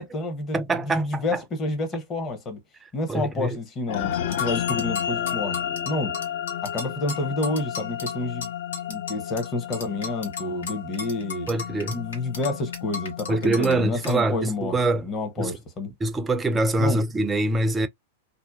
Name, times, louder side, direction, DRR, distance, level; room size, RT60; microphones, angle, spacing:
voice 1, 0.0-2.6 2.9-5.6 5.9-6.2 6.6-8.5 8.9-11.5 11.9-15.9 16.8-17.0, left 2 dB, 30° left, 0.9 m, -29 dB
voice 2, 0.5-1.4 3.1-3.6 11.5-12.0 13.3-15.1 15.4-15.6 16.0-17.9, right 2 dB, 15° right, 0.4 m, -24 dB
sound 1, 3.9-14.5, left 9 dB, 60° left, 0.4 m, -32 dB
sound 2, 4.3-9.5 9.7-13.7 14.0-14.2, left 5 dB, 75° left, 0.9 m, -35 dB
2.7 x 2.1 x 2.3 m
hypercardioid pair, 105°, 0 cm